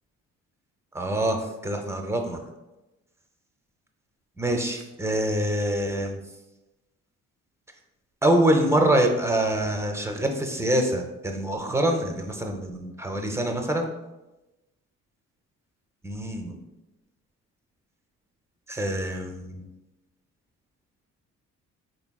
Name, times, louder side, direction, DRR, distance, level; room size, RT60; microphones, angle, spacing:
voice 1, 0.9-2.4 4.4-6.2 8.2-13.9 16.0-16.6 18.7-19.6, right 1 dB, 10° right, 3 dB, 0.4 m, -25 dB
3.8 x 3.5 x 2.2 m, 1.0 s
cardioid pair, 90°, 30 cm